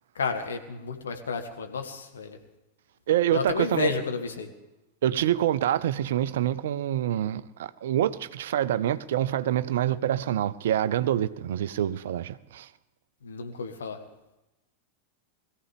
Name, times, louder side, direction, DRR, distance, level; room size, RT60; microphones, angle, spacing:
voice 1, 0.1-2.4 3.3-4.5 13.2-14.0, left 5 dB, 70° left, 1.6 m, -31 dB
voice 2, 3.1-4.0 5.0-12.7, right 11 dB, 60° right, 0.4 m, -26 dB
21.5 x 15.0 x 3.4 m
figure-of-eight pair, 90°, 0 cm